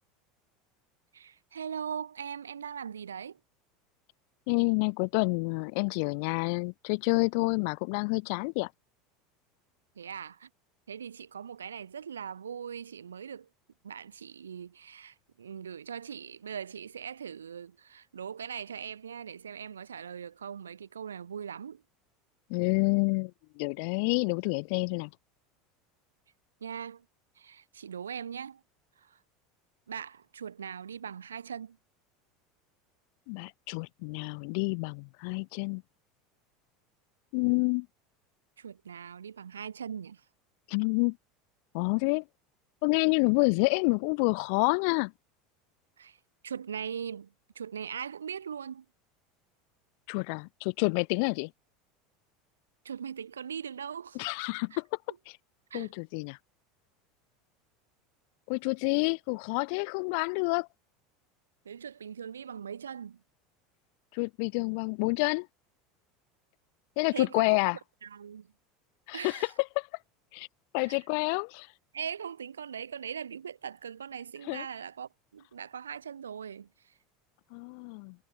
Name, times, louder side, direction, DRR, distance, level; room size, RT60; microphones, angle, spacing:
voice 1, 1.1-3.4 10.0-10.5 10.9-13.5 13.8-21.8 26.6-27.0 27.4-28.6 29.0-29.2 29.9-31.8 38.6-40.2 46.0-46.2 46.4-47.3 47.5-48.8 52.8-54.2 54.7-54.8 55.7-55.9 61.6-63.2 67.1-67.6 68.0-68.5 69.1-69.5 70.9-71.0 71.9-76.9, right 7 dB, 90° right, 6.6 m, -40 dB
voice 2, 4.5-8.7 22.5-23.3 23.6-25.1 33.3-35.8 37.3-37.9 40.7-41.2 41.7-42.2 42.8-45.1 50.1-51.5 54.1-54.8 55.7-56.4 58.5-60.7 64.1-65.5 67.0-67.8 69.1-69.5 69.7-69.9 70.3-70.5 70.7-71.7 74.5-74.6 77.5-78.1, left 36 dB, 65° left, 1.3 m, -28 dB
hypercardioid pair, 80°, 0 cm